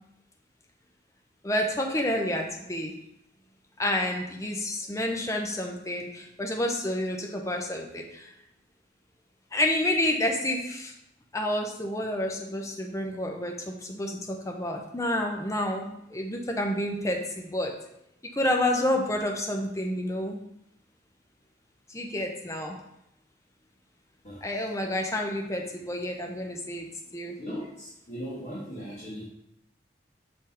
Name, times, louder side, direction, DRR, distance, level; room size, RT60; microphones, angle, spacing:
voice 1, 1.4-2.9 3.8-8.3 9.5-10.9 11.3-17.7 18.4-20.4 21.9-22.8 24.4-26.9 27.1-27.4, left 1 dB, 15° left, 2 dB, 0.6 m, -29 dB
voice 2, 24.2-24.6 27.4-29.2, equal, 35° left, -9 dB, 1.7 m, -38 dB
6.7 x 3.8 x 4.3 m, 0.81 s
head